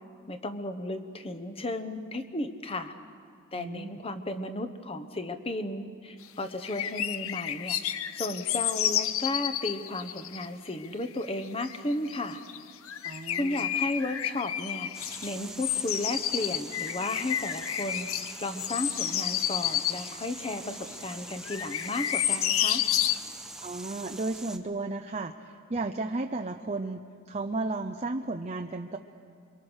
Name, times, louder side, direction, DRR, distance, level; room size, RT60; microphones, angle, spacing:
voice 1, 0.3-2.9 3.5-12.4 13.4-18.1 18.4-22.8, left 2 dB, 25° left, 8 dB, 1.1 m, -34 dB
voice 2, 3.5-4.0 13.0-13.6 23.6-27.0 27.3-29.0, right 3 dB, 30° right, 4 dB, 0.6 m, -33 dB
sound 1, 6.6-10.5 10.8-10.9 11.2-12.2 12.5-12.6 12.9-15.3 15.6-20.2 20.9-21.0 21.5-23.2, left 11 dB, 70° left, 0.7 m, -30 dB
sound 2, 14.9-24.6, right 2 dB, 5° right, 1.0 m, -43 dB
28.0 x 23.5 x 6.4 m, 2.3 s
head